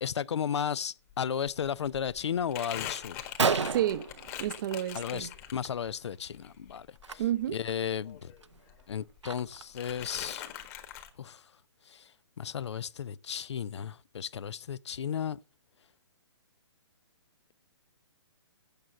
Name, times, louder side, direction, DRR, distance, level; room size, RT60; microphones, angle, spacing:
voice 1, 0.0-3.2 4.9-7.2 7.5-8.3 8.9-10.4 11.2-11.4 11.9-12.1 12.4-15.4, left 8 dB, 75° left, 0.4 m, -34 dB
Crumpling crinkling, 1.1-1.2 1.5-5.9 6.3-8.4 8.7-9.4 9.8-11.1, left 11 dB, 35° left, 1.5 m, -43 dB
Gunshot gunfire, 3.4-5.0 5.3-5.7 5.9-6.2 7.0-7.1 7.7-7.8 8.2-9.8, right 5 dB, 90° right, 0.7 m, -32 dB
voice 2, 3.7-4.0 4.4-5.3 7.2-7.6, right 12 dB, 45° right, 0.6 m, -30 dB
8.7 x 6.4 x 7.6 m
hypercardioid pair, 135°, 15 cm